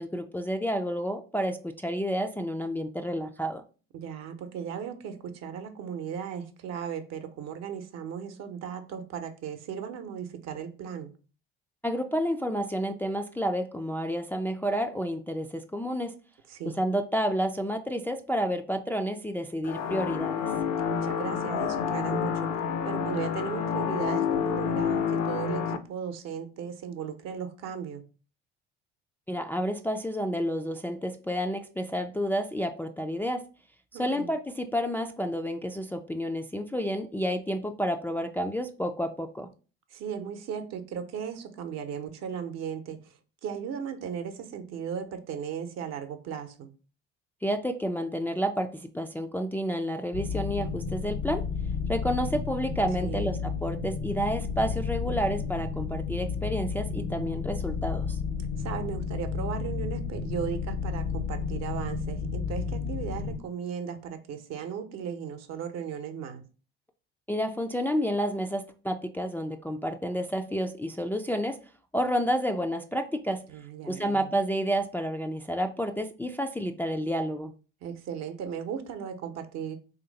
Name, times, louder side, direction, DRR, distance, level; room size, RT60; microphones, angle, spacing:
voice 1, 0.0-3.6 11.8-16.1 16.8-20.4 29.3-33.4 33.9-39.5 47.4-51.4 51.9-58.2 67.3-71.6 71.9-73.4 73.9-77.5, equal, 5° left, 4 dB, 0.3 m, -30 dB
voice 2, 3.9-11.1 16.5-16.9 20.8-22.5 22.8-28.0 33.9-34.3 39.9-43.1 43.4-46.7 53.0-53.3 58.6-66.4 73.5-74.3 77.8-79.8, right 7 dB, 60° right, 6 dB, 0.8 m, -36 dB
sound 1, 19.6-25.8, left 7 dB, 60° left, 0.6 m, -29 dB
sound 2, 50.1-63.4, left 5 dB, 80° left, 1.2 m, -32 dB
3.1 x 2.8 x 3.9 m, 0.36 s
hypercardioid pair, 65°, 30 cm